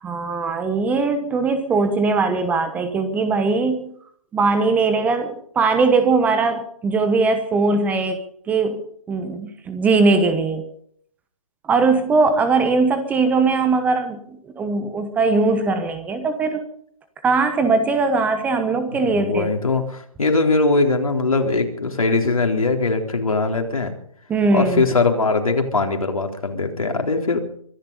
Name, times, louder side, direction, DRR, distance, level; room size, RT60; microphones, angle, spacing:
voice 1, 0.0-3.9 4.3-8.2 8.5-10.7 11.7-16.6 17.2-19.5 24.3-24.8, right 4 dB, 10° right, 9 dB, 1.1 m, -20 dB
voice 2, 19.0-24.0 24.5-27.4, left 3 dB, 75° left, 3 dB, 3.8 m, -21 dB
24.0 x 10.5 x 5.4 m, 0.64 s
figure-of-eight pair, 145°, 18 cm